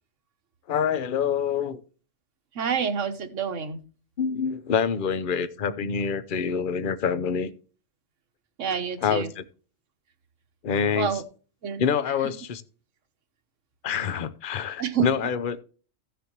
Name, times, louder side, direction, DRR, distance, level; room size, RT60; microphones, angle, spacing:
voice 1, 0.7-1.8 4.2-7.5 9.0-9.4 10.6-11.2 11.8-12.6 13.8-15.6, left 7 dB, 50° left, 13 dB, 0.8 m, -26 dB
voice 2, 2.5-3.8 8.6-9.3 11.0-11.2 11.6-11.9 14.8-15.0, right 7 dB, 75° right, 8 dB, 1.4 m, -28 dB
14.5 x 6.8 x 3.0 m, 0.38 s
omnidirectional pair, 1.3 m